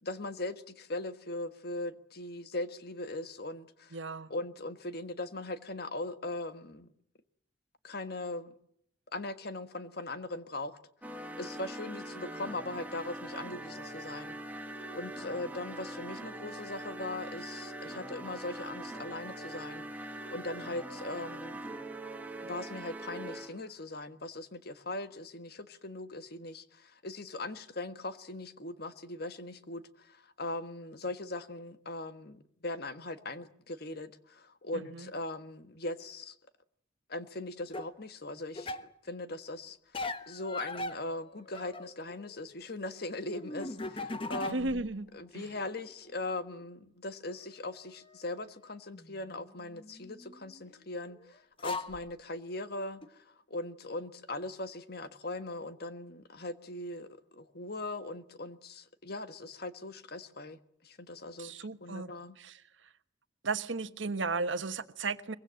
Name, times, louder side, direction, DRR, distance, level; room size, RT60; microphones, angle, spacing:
voice 1, 0.0-4.0 4.3-6.9 7.8-8.5 9.1-10.8 11.2-14.4 14.6-21.6 22.4-36.4 37.1-39.8 40.3-44.8 45.1-62.4, left 2 dB, 55° left, 1.5 m, -40 dB
voice 2, 3.9-4.3 34.7-35.1 44.5-45.1 45.3-45.4 61.4-62.1 62.4-62.6 63.4-65.4, right 3 dB, 80° right, 1.3 m, -35 dB
sound 1, 11.0-23.7, right 1 dB, 10° right, 2.0 m, -42 dB
sound 2, 37.7-37.9 38.6-38.9 39.9-42.3 42.5-44.9 45.2-46.1 47.3-47.4 48.9-50.6 51.3-51.4 51.6-52.0 53.0-53.1, left 2 dB, 30° left, 1.2 m, -40 dB
24.0 x 22.0 x 7.7 m
head